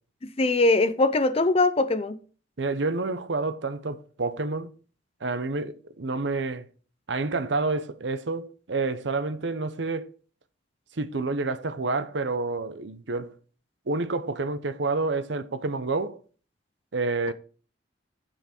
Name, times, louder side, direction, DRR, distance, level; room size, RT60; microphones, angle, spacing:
voice 1, 0.2-2.2, left 2 dB, 30° left, 0.6 m, -22 dB
voice 2, 2.6-4.7 5.2-6.7 7.1-10.1 11.0-13.3 13.9-16.2 16.9-17.3, right 3 dB, 75° right, 0.8 m, -29 dB
9.9 x 5.9 x 4.4 m
head